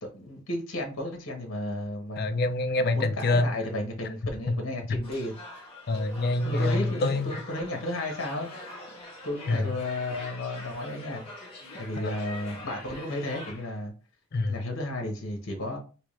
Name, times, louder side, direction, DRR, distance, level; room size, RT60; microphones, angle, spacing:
voice 1, 0.0-2.3 2.8-5.3 6.4-9.0 9.2-11.2 11.7-13.9 14.5-15.8, left 1 dB, 65° left, 1.1 m, -33 dB
voice 2, 2.2-3.5 4.5-4.6 5.9-7.3 9.5-9.8 12.0-12.2 14.3-14.6, left 2 dB, 45° left, 0.4 m, -26 dB
sound 1, 5.0-13.8, left 2 dB, 25° left, 1.0 m, -44 dB
3.6 x 2.9 x 3.2 m
head